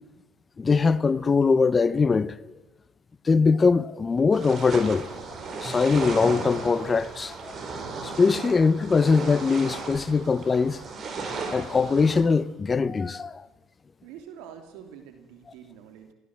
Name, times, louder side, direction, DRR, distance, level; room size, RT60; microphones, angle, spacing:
voice 1, 0.6-2.5 3.2-5.1 5.6-7.5 8.0-10.8 11.2-13.5, left 4 dB, 30° left, 0.8 m, -22 dB
sound 1, 4.3-12.2, right 4 dB, 45° right, 4.8 m, -35 dB
voice 2, 14.0-16.1, right 8 dB, 85° right, 3.0 m, -45 dB
22.0 x 15.5 x 7.7 m
supercardioid pair, 90°, 0 cm